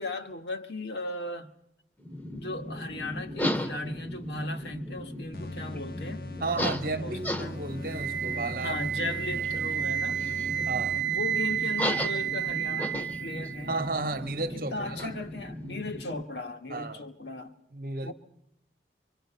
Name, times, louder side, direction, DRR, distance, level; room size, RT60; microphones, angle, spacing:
voice 1, 0.0-1.5 2.3-6.3 6.6-6.7 7.0-7.7 8.6-10.2 11.0-13.8 14.4-17.5 18.0-18.1, left 2 dB, 80° left, 1.7 m, -37 dB
sound 1, 2.0-16.2, left 1 dB, 10° left, 0.8 m, -36 dB
sound 2, 5.3-11.4, left 3 dB, 55° left, 0.9 m, -42 dB
voice 2, 6.4-8.8 9.1-9.4 10.7-11.0 13.7-15.1 16.7-17.0 17.7-18.1, right 3 dB, 50° right, 1.1 m, -33 dB
Wind instrument woodwind instrument, 7.9-13.9, right 10 dB, 80° right, 0.8 m, -31 dB
25.5 x 25.0 x 5.6 m
head